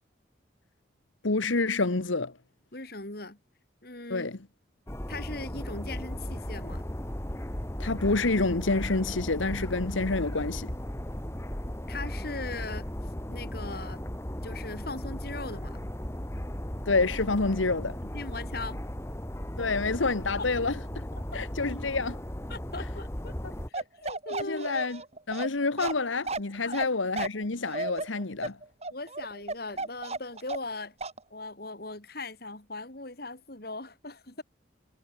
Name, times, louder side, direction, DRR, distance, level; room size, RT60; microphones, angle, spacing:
voice 1, 1.2-2.3 4.1-4.4 7.8-10.7 16.8-18.0 19.6-21.0 21.3-22.2 24.4-25.0 25.3-28.6, left 3 dB, 85° left, 1.4 m, -28 dB
voice 2, 2.7-3.4 3.8-4.3 5.1-6.9 11.9-12.9 13.3-14.0 14.4-15.8 18.0-18.8 21.3-21.7 22.5-23.3 23.7-24.7 26.6-26.8 28.9-30.9 31.3-34.4, left 2 dB, 50° left, 3.3 m, -39 dB
sound 1, 4.9-23.7, equal, 15° left, 1.3 m, -36 dB
Bark, 23.7-30.7 31.0-31.2, right 3 dB, 35° right, 2.2 m, -34 dB
head